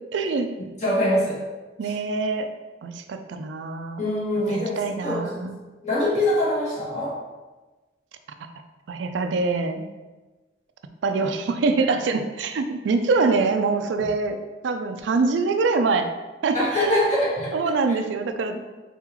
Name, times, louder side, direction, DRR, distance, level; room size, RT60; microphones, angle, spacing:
voice 1, 0.1-0.5 1.8-2.5 2.8-4.0 4.5-5.6 8.9-9.9 11.0-16.1 16.4-16.7 17.5-18.6, right 4 dB, 80° right, 8 dB, 0.4 m, -24 dB
voice 2, 0.8-1.4 1.8-1.9 4.0-5.5 5.8-7.2 16.5-18.0, left 1 dB, 40° left, -6 dB, 1.4 m, -24 dB
3.9 x 3.7 x 3.0 m, 1.2 s
head